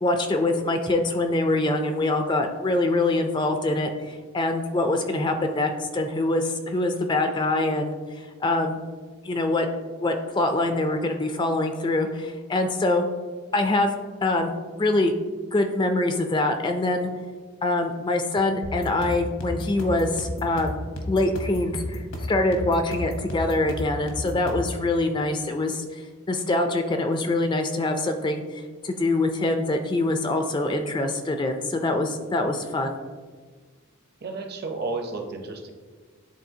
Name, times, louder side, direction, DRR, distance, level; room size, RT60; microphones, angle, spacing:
voice 1, 0.0-8.8 9.2-9.7 10.0-13.1 13.5-14.5 14.8-15.1 15.5-17.1 17.6-20.8 21.1-33.0, left 2 dB, 20° left, 6 dB, 0.3 m, -24 dB
sound 1, 18.6-24.8, left 1 dB, 80° left, 1.1 m, -33 dB
voice 2, 34.2-35.7, right 3 dB, 45° right, 4 dB, 0.7 m, -32 dB
10.0 x 3.8 x 2.7 m, 1.5 s
head